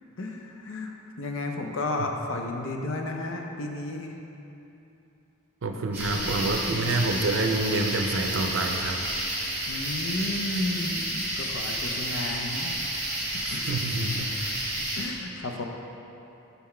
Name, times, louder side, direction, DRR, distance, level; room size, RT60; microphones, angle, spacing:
voice 1, 0.2-0.9 1.2-4.1 6.1-6.3 9.7-12.8 13.5-13.7 14.8-15.6, left 2 dB, 65° left, 2 dB, 0.5 m, -33 dB
voice 2, 5.6-9.0 13.4-14.3, right 2 dB, 65° right, 4 dB, 0.5 m, -27 dB
sound 1, 5.9-15.0, right 1 dB, 10° right, 1.4 m, -31 dB
5.8 x 5.7 x 4.3 m, 2.9 s
head